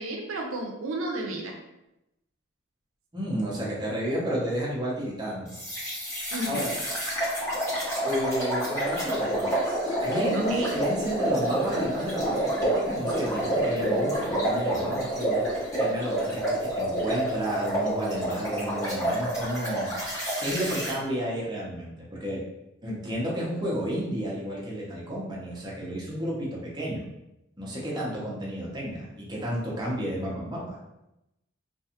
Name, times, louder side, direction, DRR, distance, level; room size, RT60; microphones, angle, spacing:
voice 1, 0.0-1.6 6.3-6.7 10.3-10.7, right 1 dB, 90° right, 1 dB, 0.5 m, -33 dB
voice 2, 3.1-5.6 6.4-6.7 8.0-19.9 20.4-22.4 22.8-27.0 27.6-30.8, equal, 20° right, -5 dB, 0.6 m, -31 dB
sound 1, 5.5-20.9, right 1 dB, 15° left, 0.8 m, -28 dB
2.4 x 2.3 x 2.8 m, 0.90 s
head